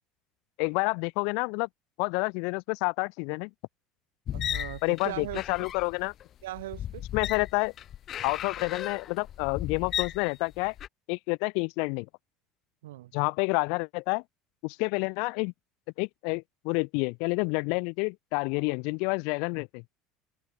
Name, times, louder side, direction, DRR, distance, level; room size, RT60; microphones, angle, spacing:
voice 1, 0.6-1.7 2.0-3.5 4.8-6.1 7.1-7.7 8.2-10.7 11.1-12.1 13.1-14.2 14.6-15.5 16.0-19.8, left 36 dB, 65° left, 1.4 m, -29 dB
sound 1, 4.3-10.9, left 11 dB, 45° left, 2.5 m, -36 dB
voice 2, 4.3-5.7 6.4-7.0 12.8-13.1, right 16 dB, 75° right, 3.6 m, -39 dB
open air
hypercardioid pair, 70°, 0 cm